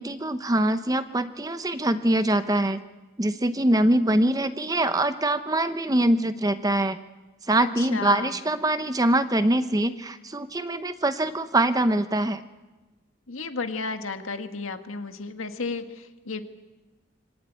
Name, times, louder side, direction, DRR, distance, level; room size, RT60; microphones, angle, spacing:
voice 1, 0.0-2.8 3.2-7.0 7.5-12.4, right 1 dB, 20° right, 11 dB, 0.8 m, -23 dB
voice 2, 7.6-8.4 13.3-16.4, left 4 dB, 90° left, 7 dB, 1.7 m, -33 dB
25.0 x 17.5 x 9.1 m, 1.2 s
head